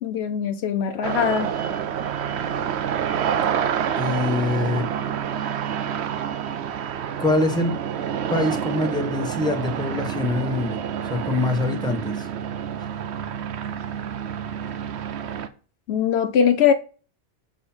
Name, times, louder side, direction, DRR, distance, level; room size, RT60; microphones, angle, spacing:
voice 1, 0.0-1.5 15.9-16.7, left 8 dB, 75° left, 0.8 m, -21 dB
sound 1, 1.0-15.5, right 8 dB, 75° right, 0.9 m, -28 dB
voice 2, 3.9-4.9 7.2-7.8 8.3-10.8 11.1-12.3, left 2 dB, 5° left, 1.0 m, -24 dB
7.0 x 3.9 x 4.3 m
omnidirectional pair, 1.1 m